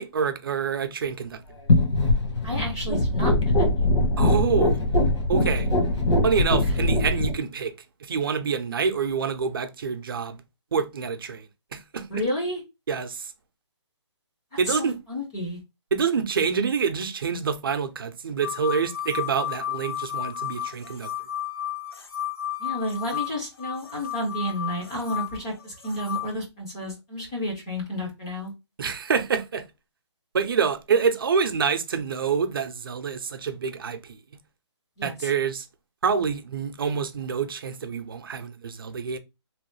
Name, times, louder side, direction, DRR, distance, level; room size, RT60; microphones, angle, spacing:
voice 1, 0.0-1.4 4.2-4.8 5.3-5.7 6.2-7.7 8.0-10.4 10.7-12.2 12.9-13.3 14.6-15.0 15.9-21.1 28.8-29.6 30.3-34.2 35.0-35.7 36.0-39.2, right 6 dB, 50° right, 0.5 m, -27 dB
sound 1, 1.7-7.3, left 1 dB, 80° left, 1.2 m, -22 dB
voice 2, 2.4-3.7 12.1-12.6 14.7-15.6 22.6-28.5 35.0-35.3, equal, 10° left, 0.3 m, -31 dB
sound 2, 18.4-26.3, left 11 dB, 55° left, 0.7 m, -33 dB
3.0 x 2.3 x 3.1 m
hypercardioid pair, 170°, 15 cm